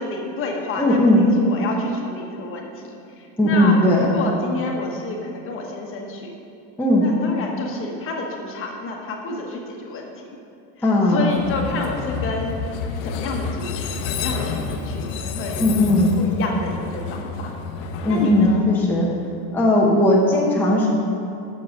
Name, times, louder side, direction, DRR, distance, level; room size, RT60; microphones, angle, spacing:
voice 1, 0.0-6.3 7.0-10.3 10.8-12.6 13.0-15.6 16.0-17.5 18.1-18.7, left 3 dB, 40° left, 0 dB, 1.2 m, -30 dB
voice 2, 0.8-1.2 3.4-4.1 6.8-7.0 10.8-11.3 15.6-16.1 18.0-19.1 19.5-20.9, left 1 dB, 5° left, -4 dB, 0.8 m, -17 dB
Train, 11.3-19.3, left 5 dB, 75° left, 0.8 m, -30 dB
7.5 x 6.4 x 5.3 m, 2.7 s
cardioid pair, 145°, 35 cm